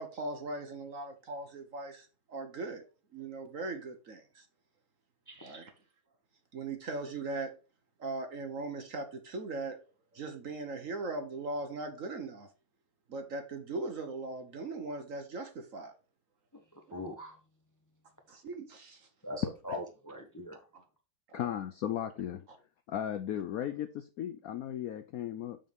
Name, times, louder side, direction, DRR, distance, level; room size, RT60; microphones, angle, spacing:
voice 1, 0.0-4.4 5.4-5.7 6.5-7.5 8.0-9.8 10.1-12.5 13.1-16.0 18.3-19.1 21.3-21.5, right 3 dB, 50° right, 1.2 m, -39 dB
voice 2, 5.3-5.6 16.5-17.4 19.2-20.7, equal, 15° left, 0.6 m, -43 dB
voice 3, 21.3-22.5 22.9-25.6, left 10 dB, 85° left, 0.7 m, -36 dB
7.0 x 3.8 x 5.2 m
omnidirectional pair, 2.1 m